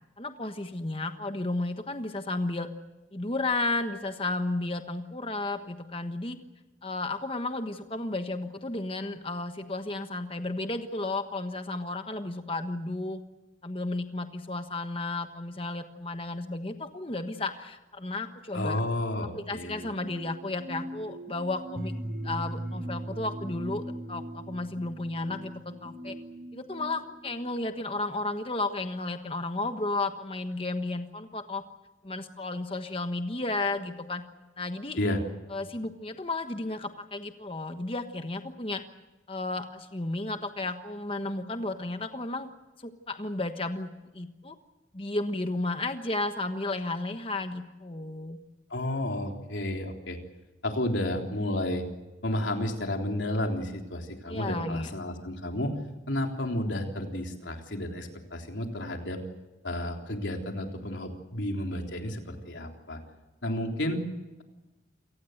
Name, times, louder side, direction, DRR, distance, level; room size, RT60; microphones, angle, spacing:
voice 1, 0.2-2.7 3.1-6.4 6.8-13.2 13.6-18.8 19.3-21.9 22.2-26.1 26.5-31.6 32.0-34.2 34.6-35.0 35.5-38.8 39.3-42.5 42.8-44.6 44.9-48.4 54.3-54.9, left 2 dB, 30° left, 7 dB, 1.3 m, -33 dB
voice 2, 18.5-19.8 35.0-35.2 48.7-50.2 50.6-51.8 52.2-55.7 56.1-59.2 59.6-63.0 63.4-64.0, left 1 dB, 85° left, 2 dB, 3.7 m, -31 dB
sound 1, 19.6-27.8, right 1 dB, 50° right, 7.9 m, -39 dB
29.0 x 18.5 x 8.0 m, 1.1 s
head